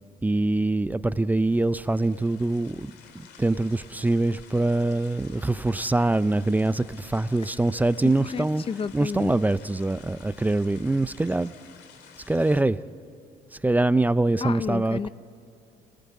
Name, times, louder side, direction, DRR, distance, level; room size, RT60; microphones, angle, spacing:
voice 1, 0.2-8.6 8.9-11.5 12.3-12.8 13.5-15.1, right 2 dB, 10° right, 0.5 m, -24 dB
sound 1, 1.2-12.6, left 7 dB, 80° left, 2.2 m, -52 dB
voice 2, 8.0-9.3 14.4-15.1, left 6 dB, 35° left, 0.6 m, -31 dB
27.0 x 18.5 x 8.5 m
cardioid pair, 110°, 17 cm